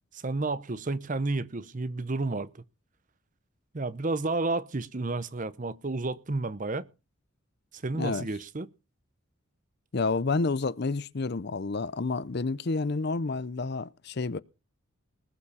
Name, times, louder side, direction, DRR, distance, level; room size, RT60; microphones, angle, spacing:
voice 1, 0.1-2.6 3.7-6.9 7.7-8.7, right 2 dB, 35° right, 0.7 m, -31 dB
voice 2, 9.9-14.4, left 3 dB, 50° left, 0.6 m, -29 dB
19.5 x 7.1 x 5.5 m
head